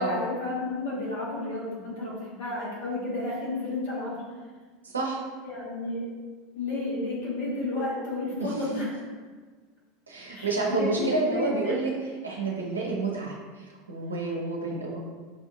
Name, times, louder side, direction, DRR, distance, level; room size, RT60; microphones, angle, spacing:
voice 1, 0.0-4.1 5.4-6.0 6.5-8.9 10.3-11.7, left 2 dB, 60° left, -5 dB, 1.3 m, -32 dB
voice 2, 10.1-11.9 12.2-13.3 13.9-15.0, right 3 dB, 80° right, -2 dB, 0.8 m, -29 dB
5.6 x 2.6 x 2.5 m, 1.4 s
figure-of-eight pair, 80°, 0 cm